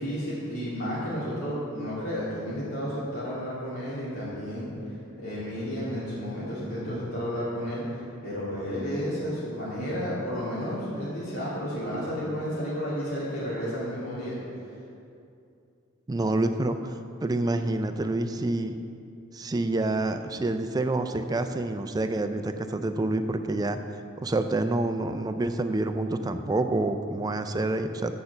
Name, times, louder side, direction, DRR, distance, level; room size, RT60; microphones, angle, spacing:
voice 1, 0.0-14.3, equal, 80° left, -10 dB, 2.1 m, -32 dB
voice 2, 16.1-16.8 17.2-18.8 19.3-23.8 24.2-28.1, right 2 dB, 20° right, 8 dB, 0.3 m, -27 dB
6.6 x 5.7 x 6.7 m, 2.5 s
head